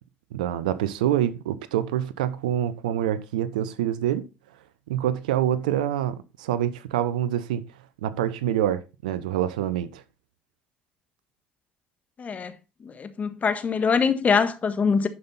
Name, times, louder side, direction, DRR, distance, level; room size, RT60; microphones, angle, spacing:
voice 1, 0.3-4.3 4.9-7.6 8.0-10.0, right 11 dB, 85° right, 0.7 m, -26 dB
voice 2, 12.2-12.5 12.8-15.1, left 5 dB, 35° left, 1.5 m, -23 dB
11.0 x 5.5 x 4.1 m
hypercardioid pair, 70°, 4 cm